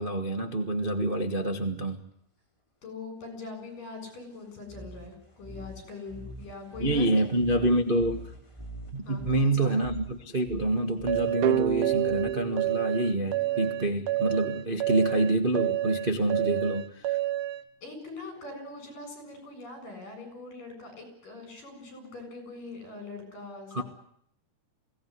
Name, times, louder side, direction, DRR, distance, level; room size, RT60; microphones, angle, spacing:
voice 1, 0.0-2.0 6.8-8.3 8.9-17.2 23.7-23.8, right 1 dB, 45° right, 4 dB, 0.6 m, -27 dB
voice 2, 2.8-7.2 9.1-9.7 17.8-23.8, left 3 dB, 60° left, 7 dB, 8.9 m, -42 dB
sound 1, 4.6-12.6, right 1 dB, 10° left, 2.3 m, -45 dB
sound 2, 11.1-17.6, right 14 dB, 65° right, 2.6 m, -29 dB
sound 3, 11.4-14.2, right 11 dB, 80° right, 2.9 m, -30 dB
22.5 x 17.5 x 9.6 m, 0.70 s
omnidirectional pair, 4.3 m